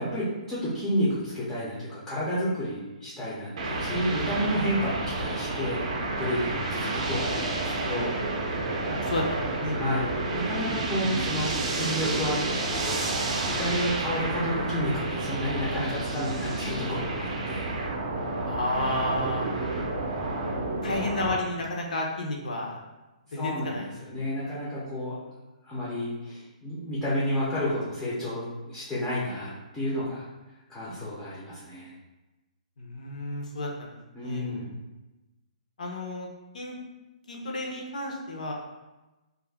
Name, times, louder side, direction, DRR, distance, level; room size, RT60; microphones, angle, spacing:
voice 1, 0.0-8.1 9.7-10.1 10.3-12.4 12.6-17.7 23.4-25.2 25.6-30.3 30.7-31.9 34.1-34.7, equal, 5° left, -10 dB, 0.4 m, -31 dB
sound 1, 3.6-21.4, right 2 dB, 50° right, 0.5 m, -30 dB
voice 2, 8.8-9.7 18.5-19.5 20.8-22.8 23.3-23.9 32.8-34.4 35.8-36.3 36.5-36.8 37.3-38.5, left 1 dB, 70° left, 0 dB, 0.6 m, -32 dB
2.4 x 2.1 x 3.3 m, 1.1 s
hypercardioid pair, 165°, 4 cm